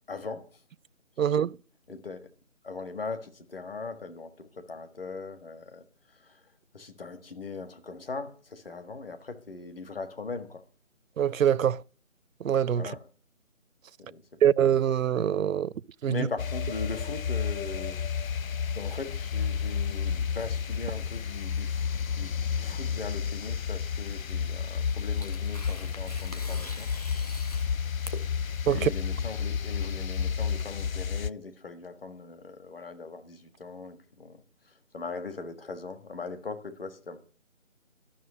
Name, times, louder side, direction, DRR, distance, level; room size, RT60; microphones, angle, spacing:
voice 1, 0.1-0.5 1.9-2.3 2.6-5.8 6.2-6.4 6.7-10.6 12.7-13.1 14.0-14.2 16.1-18.3 18.7-22.3 22.6-26.9 27.2-27.3 28.7-34.4 34.9-37.2, left 4 dB, 45° left, 1.6 m, -40 dB
voice 2, 1.2-1.6 11.2-11.8 12.4-12.9 14.4-15.7 16.0-16.3 28.7-28.9, right 9 dB, 75° right, 0.5 m, -24 dB
sound 1, 16.4-31.3, left 6 dB, 80° left, 0.5 m, -31 dB
Tearing, 24.9-31.3, left 1 dB, 30° left, 0.8 m, -46 dB
13.0 x 6.3 x 9.4 m
figure-of-eight pair, 160°, 41 cm